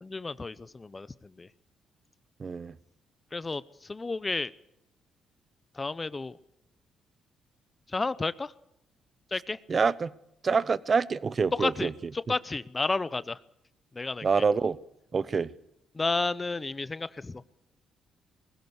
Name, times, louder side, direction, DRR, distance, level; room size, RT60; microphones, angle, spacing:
voice 1, 0.0-1.5 3.3-4.5 5.7-6.4 7.9-8.5 9.3-9.6 11.5-13.4 13.9-14.3 15.9-17.4, left 3 dB, 25° left, 0.7 m, -32 dB
voice 2, 2.4-2.7 9.7-10.1 10.4-11.9 14.2-14.8 15.1-15.5, right 5 dB, 40° right, 0.8 m, -26 dB
20.0 x 16.0 x 8.1 m
cardioid pair, 90°, 0 cm